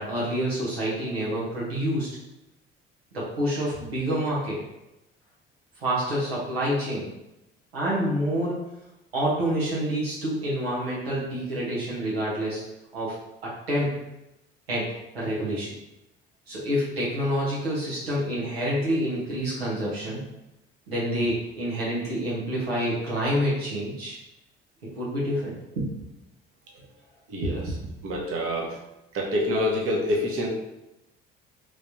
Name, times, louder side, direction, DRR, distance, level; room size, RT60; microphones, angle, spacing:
voice 1, 0.0-2.1 3.1-4.6 5.8-7.1 7.7-8.6 9.1-12.6 12.9-14.0 14.7-15.7 16.5-20.2 20.9-24.2 24.9-25.9, equal, 90° right, -6 dB, 0.9 m, -27 dB
voice 2, 27.3-27.8 28.0-28.8 29.1-30.5, left 1 dB, 45° right, -3 dB, 1.1 m, -26 dB
3.2 x 3.2 x 2.6 m, 0.91 s
hypercardioid pair, 55°, 30 cm